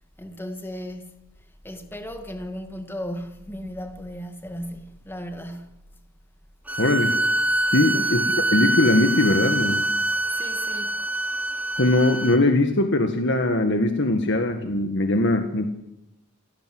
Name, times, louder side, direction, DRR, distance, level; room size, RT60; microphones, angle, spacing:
voice 1, 0.2-1.1 1.6-5.9 7.9-8.1 10.3-11.0, equal, 10° left, 2.0 m, -36 dB
sound 1, 6.7-12.4, right 2 dB, 5° right, 1.0 m, -24 dB
voice 2, 6.8-7.1 7.7-8.3 8.5-9.9 11.8-15.7, left 2 dB, 55° left, 1.9 m, -21 dB
26.5 x 17.5 x 7.9 m
head